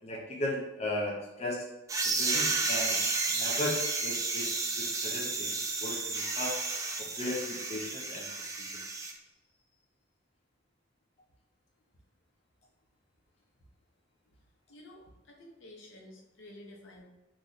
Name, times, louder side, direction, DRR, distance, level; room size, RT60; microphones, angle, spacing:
voice 1, 0.0-1.7 2.0-3.0 3.3-6.6 7.0-8.8, left 1 dB, 35° left, -3 dB, 0.6 m, -37 dB
sound 1, 1.9-9.1, right 3 dB, 15° right, 0.4 m, -32 dB
voice 2, 15.3-17.1, left 1 dB, 85° left, -1 dB, 0.8 m, -51 dB
3.1 x 2.5 x 3.9 m, 1.0 s
head